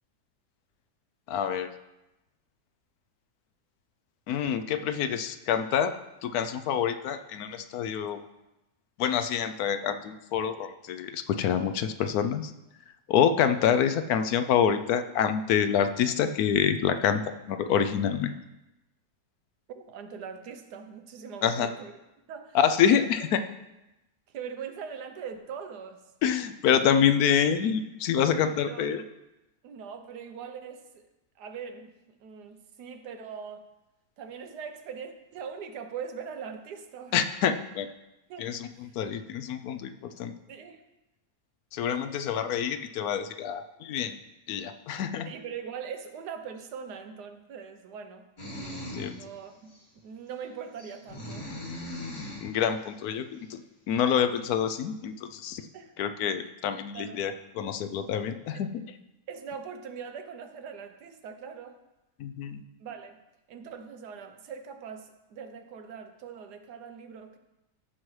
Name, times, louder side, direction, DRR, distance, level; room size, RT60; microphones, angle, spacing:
voice 1, 1.3-1.7 4.3-5.9 6.2-8.2 9.0-12.5 13.1-17.2 17.5-18.3 21.4-21.7 22.5-23.4 26.2-29.0 37.1-37.9 38.4-39.9 40.2-40.3 41.7-44.2 44.5-45.3 48.9-49.2 52.4-53.6 53.9-55.6 56.0-58.8 62.2-62.6, left 8 dB, 75° left, 9 dB, 1.0 m, -26 dB
voice 2, 19.7-21.9 22.3-22.6 22.9-23.1 24.3-26.0 28.6-28.9 29.6-31.0 31.4-31.9 32.2-33.7 34.2-37.2 38.3-38.5 38.8-38.9 40.5-40.8 42.0-42.2 45.3-48.3 49.1-49.7 50.0-51.5 55.7-55.9 56.9-57.2 58.5-58.6 59.3-61.8 62.8-63.2 63.5-67.4, right 6 dB, 80° right, 7 dB, 1.4 m, -41 dB
sound 1, 48.4-49.2 49.7-49.8 50.8-52.5, left 1 dB, 55° left, 2.4 m, -39 dB
14.5 x 6.0 x 3.2 m, 0.96 s
omnidirectional pair, 1.7 m